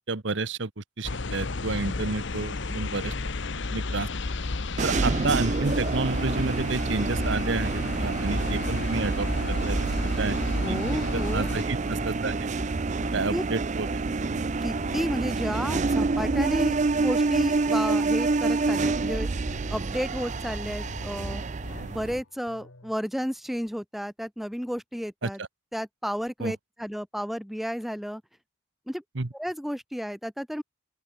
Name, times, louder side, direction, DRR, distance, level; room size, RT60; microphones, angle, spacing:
voice 1, 0.1-3.1 3.7-4.1 4.8-9.3 9.7-9.8 10.2-10.4 10.7-10.8 11.1-12.4 13.1-14.0 25.2-25.5 26.4-26.5 29.1-29.3, right 3 dB, 60° right, 1.2 m, -30 dB
sound 1, 1.0-11.6, left 3 dB, 60° left, 0.9 m, -33 dB
sound 2, 4.8-22.2, right 3 dB, 35° right, 0.5 m, -27 dB
sound 3, 5.7-22.9, left 1 dB, 85° left, 3.2 m, -43 dB
voice 2, 10.6-11.6 13.3-13.4 14.6-19.3 19.7-21.4 21.9-25.4 25.7-28.2 28.9-29.0 29.3-30.6, equal, ahead, 2.3 m, -32 dB
open air
head